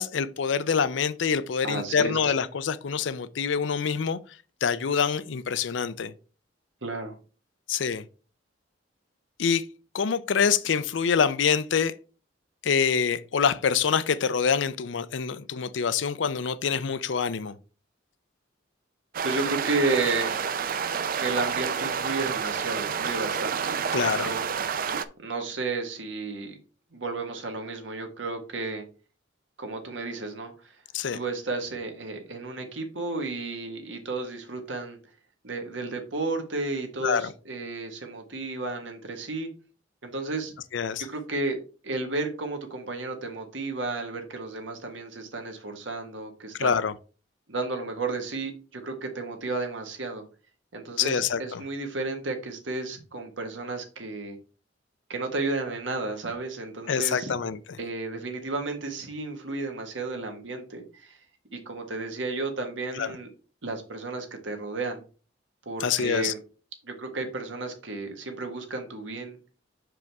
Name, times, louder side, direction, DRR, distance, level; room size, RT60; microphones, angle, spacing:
voice 1, 0.0-4.2 4.6-6.1 7.7-8.0 9.4-9.6 9.9-11.9 12.6-17.5 23.9-24.3 30.9-31.2 37.0-37.3 40.7-41.0 46.6-46.9 51.0-51.6 56.9-57.6 63.0-63.1 65.8-66.3, left 6 dB, 75° left, 0.5 m, -25 dB
voice 2, 1.6-2.2 6.8-7.1 19.2-20.3 21.2-24.4 25.2-26.6 26.9-28.8 29.6-30.7 31.1-35.0 35.4-39.5 40.0-40.5 41.0-46.8 47.5-50.2 50.7-54.4 55.1-57.3 57.8-61.2 61.5-63.3 63.6-65.0 65.6-66.4 66.8-69.4, right 3 dB, 80° right, 1.4 m, -32 dB
sound 1, 19.1-25.1, right 7 dB, 50° right, 0.4 m, -29 dB
6.1 x 4.9 x 3.4 m
head